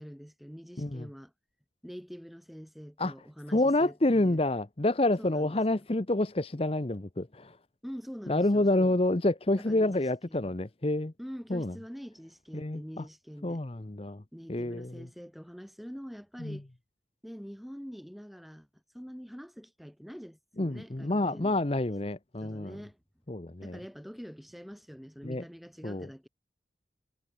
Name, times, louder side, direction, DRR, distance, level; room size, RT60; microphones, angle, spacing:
voice 1, 0.0-1.3 1.8-4.4 5.2-5.6 7.8-9.0 9.6-10.6 11.2-13.6 14.3-16.7 17.2-18.7 18.9-21.6 22.4-23.0 23.6-26.3, equal, ahead, 2.8 m, -45 dB
voice 2, 3.5-7.6 8.3-11.1 11.5-11.7 12.5-13.0 13.4-14.2 14.5-15.1 16.4-16.6 20.6-22.8 23.3-23.8 25.2-25.4 25.8-26.1, left 2 dB, 35° left, 0.8 m, -28 dB
head